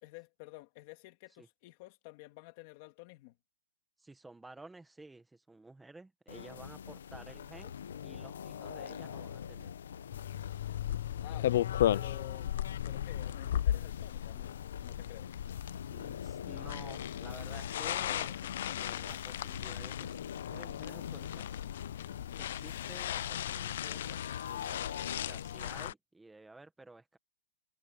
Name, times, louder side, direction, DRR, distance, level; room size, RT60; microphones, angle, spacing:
voice 1, 0.0-3.4 11.2-11.5 11.9-12.5 12.8-15.3, left 21 dB, 30° left, 2.3 m, -51 dB
voice 2, 4.0-7.7 8.0-9.7 15.9-21.5 22.3-27.2, right 2 dB, 5° right, 1.6 m, -53 dB
sound 1, 6.3-25.9, left 8 dB, 90° left, 1.3 m, -44 dB
sound 2, 10.1-25.9, left 11 dB, 55° left, 0.5 m, -36 dB
hypercardioid pair, 175°, 0 cm